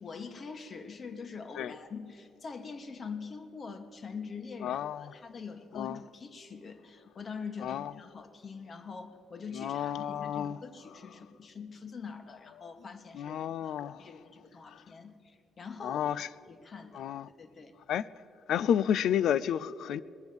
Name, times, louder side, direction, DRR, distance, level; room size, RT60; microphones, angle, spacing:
voice 1, 0.0-4.8 5.1-13.4 13.6-13.7 14.0-16.1 16.5-17.0 17.4-17.7, left 5 dB, 45° left, 1.2 m, -44 dB
voice 2, 4.6-5.1 5.7-6.0 7.6-7.9 9.5-10.6 13.1-14.0 14.7-14.8 15.8-16.3 16.9-17.3 17.9-18.1 18.5-20.0, left 9 dB, 75° left, 0.3 m, -31 dB
20.0 x 7.1 x 7.9 m
cardioid pair, 90°, 0 cm